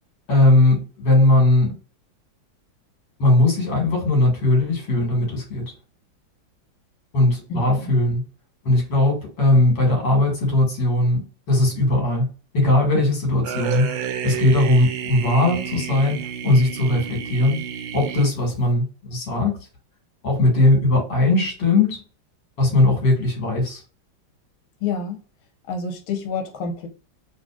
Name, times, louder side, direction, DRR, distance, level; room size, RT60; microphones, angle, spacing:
voice 1, 0.3-1.7 3.2-5.7 7.1-8.2 8.6-11.2 11.5-13.9 14.2-17.6 17.9-19.6 20.2-22.0 22.6-23.8, left 2 dB, 65° left, 2.3 m, -19 dB
voice 2, 7.5-7.9 24.8-25.2 25.7-26.9, left 5 dB, 80° left, 1.7 m, -28 dB
sound 1, 13.4-18.7, right 8 dB, 80° right, 1.4 m, -30 dB
4.1 x 3.1 x 2.3 m
omnidirectional pair, 2.2 m